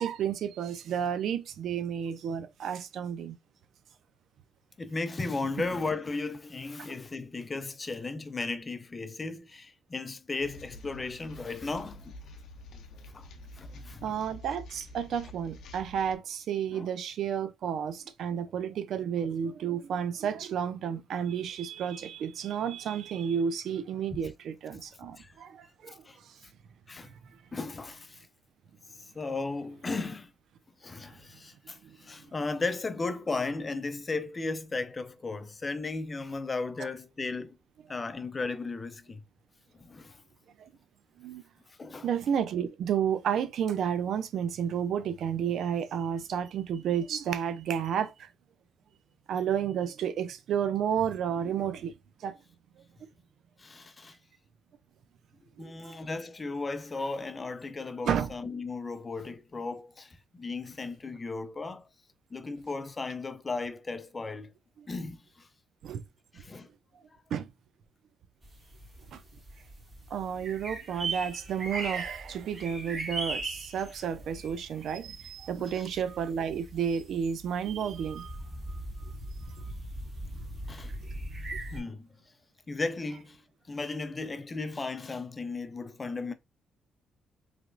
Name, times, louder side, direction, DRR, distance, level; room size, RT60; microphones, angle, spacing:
voice 1, 0.0-3.4 14.0-25.9 31.8-32.0 40.6-40.7 41.2-41.4 42.0-48.3 49.3-51.9 52.2-52.4 55.6-56.0 58.1-58.3 65.8-66.0 67.3-67.5 69.1-69.2 70.1-78.4, right 8 dB, 70° right, 0.4 m, -31 dB
voice 2, 4.8-12.2 13.1-13.3 13.5-14.2 16.7-16.9 24.7-24.8 25.2-25.3 25.8-26.2 26.9-27.1 27.5-28.3 29.0-30.3 30.8-37.6 37.9-39.2 39.8-40.2 41.8-42.1 53.6-54.2 55.6-61.8 62.3-64.5 64.9-65.5 66.3-66.7 75.6-76.0 80.7-80.9 81.7-82.1 82.7-83.4 83.7-86.3, left 3 dB, 30° left, 0.5 m, -35 dB
sound 1, 10.4-16.2, left 1 dB, 70° left, 0.6 m, -48 dB
sound 2, 68.4-81.8, right 2 dB, 40° right, 1.8 m, -40 dB
3.3 x 2.9 x 2.5 m
cardioid pair, 90°, 0 cm